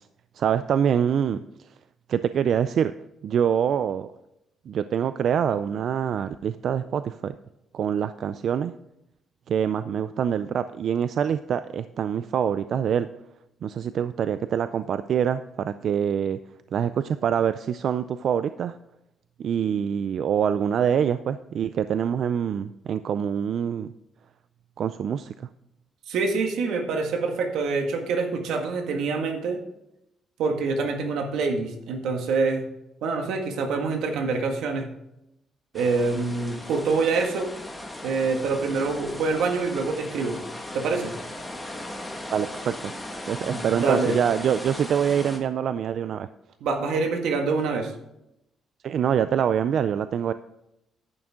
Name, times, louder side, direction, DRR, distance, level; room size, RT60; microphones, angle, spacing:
voice 1, 0.4-1.4 2.1-2.9 3.2-4.1 4.7-7.3 7.7-8.7 9.5-13.1 13.6-16.4 16.7-18.8 19.4-23.9 24.8-25.3 42.3-42.9 43.3-46.3 48.8-50.3, right 8 dB, 55° right, 12 dB, 0.4 m, -25 dB
voice 2, 26.1-29.6 30.4-32.7 33.0-34.9 35.7-37.5 38.0-40.4 40.7-41.1 43.5-44.2 46.6-47.9, right 4 dB, 80° right, 4 dB, 1.8 m, -26 dB
sound 1, 35.7-45.4, left 1 dB, 5° left, 1.6 m, -37 dB
10.5 x 8.8 x 3.7 m, 0.86 s
cardioid pair, 135°, 0 cm